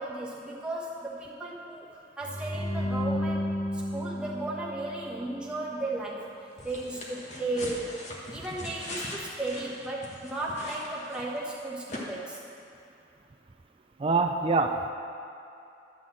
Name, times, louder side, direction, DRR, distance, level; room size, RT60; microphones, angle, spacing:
voice 1, 0.0-6.3 6.6-8.0 8.3-12.4, right 2 dB, 5° right, -6 dB, 1.2 m, -35 dB
sound 1, 2.2-5.4, left 1 dB, 20° left, 0.7 m, -32 dB
sound 2, 6.6-11.5 11.9-12.0, left 1 dB, 40° left, 1.2 m, -41 dB
voice 2, 14.0-14.9, right 3 dB, 30° right, 4 dB, 0.4 m, -25 dB
11.0 x 4.0 x 7.4 m, 2.7 s
head